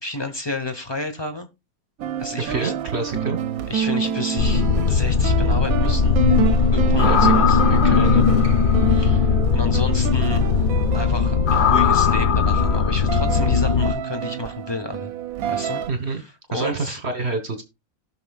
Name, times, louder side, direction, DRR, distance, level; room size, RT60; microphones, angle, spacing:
voice 1, 0.0-1.5 2.2-2.7 3.7-6.2 6.7-7.6 8.9-9.3 9.5-10.4 10.9-15.1 15.5-17.0, left 2 dB, 20° left, 7 dB, 0.9 m, -31 dB
sound 1, 2.0-15.9, right 9 dB, 75° right, 1.1 m, -28 dB
voice 2, 2.5-3.4 7.0-7.3 7.7-8.3 15.9-16.2 16.5-17.6, right 3 dB, 50° right, 7 dB, 1.4 m, -27 dB
sound 2, 4.4-13.9, left 5 dB, 50° left, 0.6 m, -18 dB
18.0 x 6.0 x 2.3 m, 0.24 s
omnidirectional pair, 1.5 m